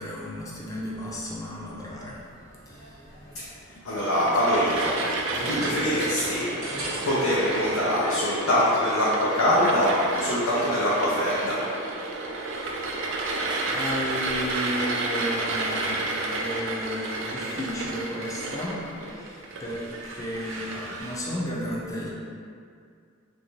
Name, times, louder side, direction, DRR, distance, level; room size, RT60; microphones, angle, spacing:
voice 1, 0.0-2.2 2.7-3.0 5.3-5.9 12.6-13.1 13.7-22.1, equal, 15° left, -5 dB, 0.5 m, -34 dB
sound 1, 2.4-7.8, right 1 dB, 90° right, 0.9 m, -40 dB
voice 2, 3.7-5.0 5.4-6.5 7.0-11.6, left 1 dB, 90° left, -8 dB, 0.6 m, -24 dB
sound 2, 4.0-21.3, right 2 dB, 65° right, 0.4 m, -31 dB
3.2 x 2.6 x 3.1 m, 2.3 s
head